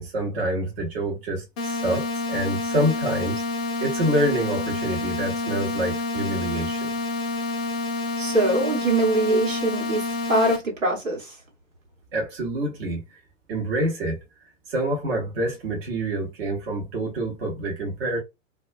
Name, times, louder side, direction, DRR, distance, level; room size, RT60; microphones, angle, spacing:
voice 1, 0.0-3.4 3.8-6.9 12.1-13.0 13.5-14.2 14.7-18.2, right 1 dB, 50° right, 1.0 m, -27 dB
sound 1, 1.6-10.6, left 3 dB, 25° left, 0.3 m, -28 dB
voice 2, 8.2-11.4, right 2 dB, 85° right, 1.3 m, -23 dB
2.2 x 2.2 x 2.4 m
figure-of-eight pair, 105°, 37 cm